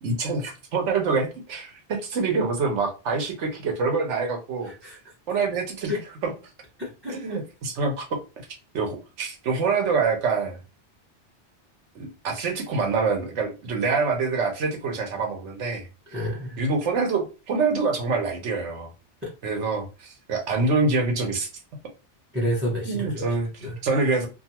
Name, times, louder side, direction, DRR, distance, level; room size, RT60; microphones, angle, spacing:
voice 1, 0.0-4.9 5.3-5.9 6.2-6.3 7.1-8.2 8.7-10.6 11.9-15.9 16.6-18.9 19.4-21.5 22.9-24.3, right 4 dB, 85° right, 1.1 m, -26 dB
voice 2, 4.6-5.1 5.9-6.0 6.8-7.4 16.1-16.6 19.2-19.3 22.3-24.0, equal, 15° right, 0.6 m, -30 dB
2.6 x 2.3 x 2.8 m
omnidirectional pair, 1.2 m